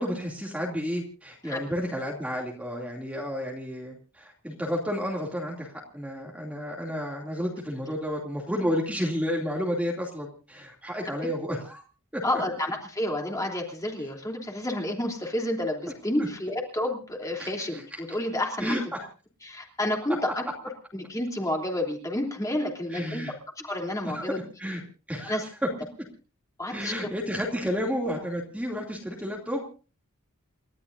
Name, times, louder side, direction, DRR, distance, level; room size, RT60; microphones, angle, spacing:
voice 1, 0.0-11.8 12.1-12.2 17.4-17.5 18.6-18.8 22.9-23.3 24.0-24.3 24.6-24.8 25.1-25.7 26.7-29.6, equal, 5° right, -1 dB, 2.6 m, -31 dB
voice 2, 12.2-17.8 18.1-18.7 19.4-20.4 20.9-23.2 23.6-24.4 25.3-25.4 26.6-26.9, left 1 dB, 15° left, 1 dB, 3.2 m, -30 dB
29.5 x 13.0 x 2.7 m, 0.36 s
head